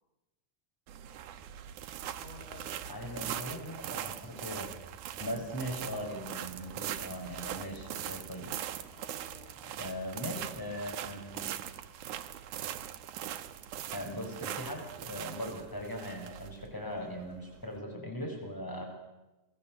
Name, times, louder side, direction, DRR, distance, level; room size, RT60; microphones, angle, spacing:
sound 1, 0.9-17.8, right 11 dB, 90° right, 2.6 m, -41 dB
voice 1, 2.2-2.9 3.9-4.1 5.1-5.4 8.9-9.8 18.7-18.9, left 4 dB, 60° left, 1 dB, 7.9 m, -53 dB
voice 2, 2.9-4.7 5.2-8.5 9.8-11.4 13.9-18.9, equal, 5° left, 2 dB, 5.8 m, -39 dB
27.0 x 20.5 x 7.8 m, 1.0 s
omnidirectional pair, 3.4 m